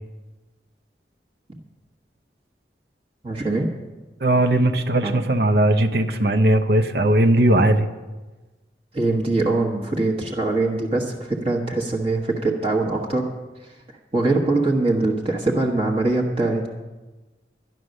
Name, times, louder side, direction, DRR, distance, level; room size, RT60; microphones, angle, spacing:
voice 1, 3.2-3.7 5.0-5.2 8.9-13.3 13.6-13.7 14.1-16.7, right 2 dB, 30° right, -2 dB, 1.3 m, -22 dB
voice 2, 4.2-7.9, right 1 dB, 60° right, 8 dB, 0.9 m, -18 dB
11.5 x 11.0 x 6.4 m, 1.2 s
head